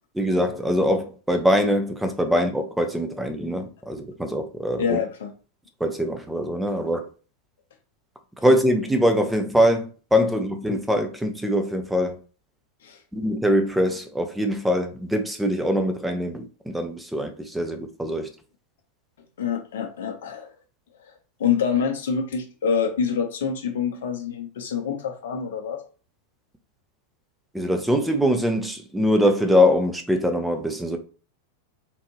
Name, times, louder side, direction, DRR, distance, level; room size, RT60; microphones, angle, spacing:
voice 1, 0.1-5.0 5.8-7.0 8.4-12.2 13.1-18.3 27.5-31.0, equal, 5° right, 0.6 m, -23 dB
voice 2, 4.8-5.3 12.8-13.0 19.4-20.5 21.4-25.8, left 7 dB, 60° left, 0.8 m, -26 dB
3.7 x 2.6 x 3.0 m
figure-of-eight pair, 90°, 0 cm